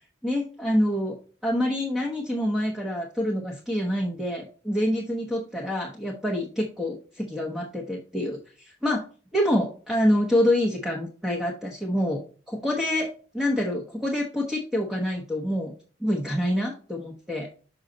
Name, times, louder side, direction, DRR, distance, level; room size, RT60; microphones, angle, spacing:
voice 1, 0.2-1.2 1.4-9.0 9.3-12.2 12.5-13.1 13.3-15.7 16.0-17.5, left 1 dB, 5° right, -1 dB, 0.9 m, -26 dB
6.2 x 5.4 x 3.9 m, 0.38 s
head